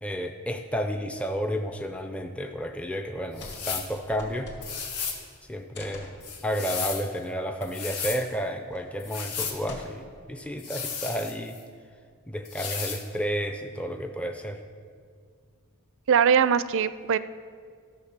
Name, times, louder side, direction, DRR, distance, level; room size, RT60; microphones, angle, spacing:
voice 1, 0.0-4.5 5.5-6.1 6.4-11.6 12.3-14.6, equal, 5° left, 5 dB, 0.4 m, -31 dB
sound 1, 3.3-3.7 3.9-5.0 5.7-6.2 7.6-7.7 8.1-8.2 8.7-9.0 9.7-10.2 10.8-11.3, left 2 dB, 50° left, 2.2 m, -44 dB
sound 2, 3.4-3.9 4.6-5.2 6.2-7.1 7.6-8.2 9.0-9.6 10.6-11.6 12.4-13.0, left 6 dB, 85° left, 1.4 m, -34 dB
voice 2, 16.1-17.2, right 7 dB, 60° right, 15 dB, 0.4 m, -21 dB
13.0 x 7.2 x 5.8 m, 2.1 s
head